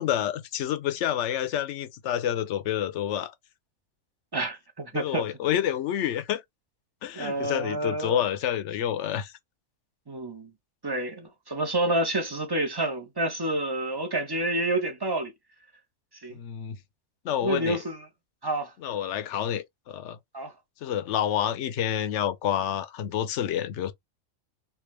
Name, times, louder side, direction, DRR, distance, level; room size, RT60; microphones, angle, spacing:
voice 1, 0.0-3.3 4.9-6.4 7.0-9.3 16.3-16.8 17.2-17.8 18.8-20.2 20.8-23.9, left 10 dB, 65° left, 0.9 m, -28 dB
voice 2, 4.3-5.4 7.1-8.2 10.1-10.5 10.8-15.3 16.2-16.4 17.4-18.0 18.4-18.7 20.3-20.5, right 1 dB, 25° right, 0.6 m, -29 dB
3.4 x 2.6 x 3.2 m
omnidirectional pair, 1.5 m